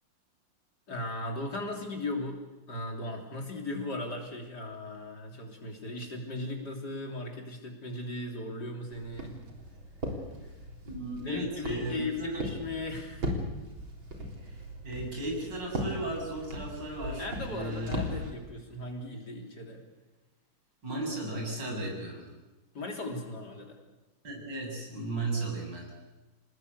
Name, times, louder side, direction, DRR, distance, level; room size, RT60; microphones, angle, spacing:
voice 1, 0.9-9.4 11.2-13.2 17.2-19.8 22.7-23.8, left 2 dB, 55° left, 2 dB, 4.0 m, -37 dB
Walk footsteps, 8.9-18.3, equal, 85° right, 4.6 m, -38 dB
voice 2, 10.8-12.3 14.2-14.3 14.8-17.9 20.8-22.2 24.2-25.9, right 2 dB, 65° right, 0 dB, 8.2 m, -35 dB
27.5 x 19.0 x 8.3 m, 1.1 s
omnidirectional pair, 2.1 m